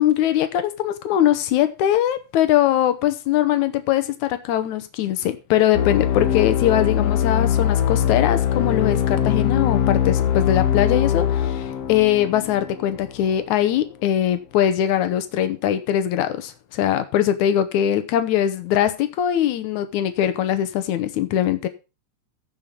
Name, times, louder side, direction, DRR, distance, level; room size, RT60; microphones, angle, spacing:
voice 1, 0.0-21.7, left 11 dB, 90° left, 10 dB, 2.4 m, -21 dB
sound 1, 5.7-13.3, left 9 dB, 60° left, 2.2 m, -21 dB
15.0 x 5.8 x 5.2 m, 0.30 s
omnidirectional pair, 3.3 m